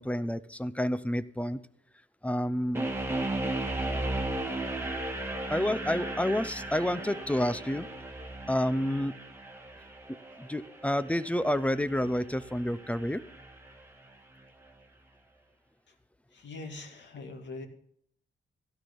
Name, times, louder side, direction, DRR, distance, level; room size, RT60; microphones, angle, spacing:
voice 1, 0.0-1.6 2.2-2.9 5.5-7.9 8.5-9.2 10.4-13.2, left 1 dB, 5° left, 14 dB, 0.5 m, -29 dB
sound 1, 2.7-13.8, right 2 dB, 10° right, 1.6 m, -36 dB
voice 2, 16.3-17.7, left 3 dB, 65° left, 4 dB, 2.3 m, -42 dB
16.5 x 11.5 x 5.4 m, 0.67 s
wide cardioid pair, 145°, 20 cm